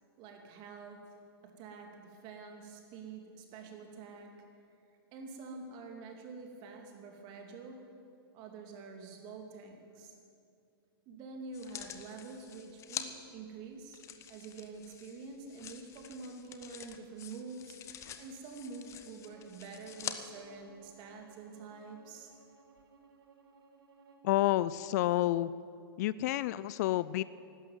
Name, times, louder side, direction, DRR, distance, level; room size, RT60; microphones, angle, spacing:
voice 1, 0.2-4.4 5.1-7.9 8.3-10.2 11.1-14.0 14.3-22.3, right 4 dB, 35° right, 3 dB, 2.7 m, -47 dB
sound 1, 11.5-13.1 13.9-20.2 20.8-20.9, left 9 dB, 20° left, 1.0 m, -46 dB
Bowed string instrument, 19.2-24.3, right 4 dB, 70° right, 2.3 m, -61 dB
voice 2, 24.2-25.5 26.0-27.2, left 15 dB, 45° left, 17 dB, 0.4 m, -29 dB
12.5 x 12.0 x 9.4 m, 2.5 s
hypercardioid pair, 130°, 13 cm